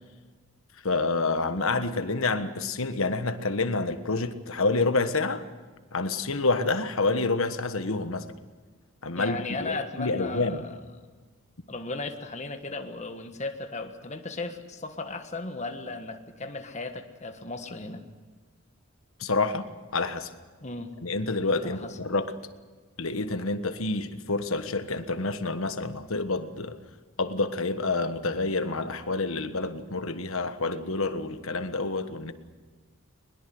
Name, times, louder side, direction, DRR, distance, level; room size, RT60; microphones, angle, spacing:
voice 1, 0.8-5.4 5.9-8.3 9.0-10.6 19.2-20.3 21.0-22.3 23.0-26.8 27.2-32.3, left 3 dB, 75° left, 10 dB, 1.4 m, -28 dB
voice 2, 9.2-10.8 11.7-18.0 20.6-21.0 21.6-22.0, left 3 dB, 35° left, 6 dB, 1.5 m, -36 dB
21.5 x 21.0 x 7.8 m, 1.4 s
head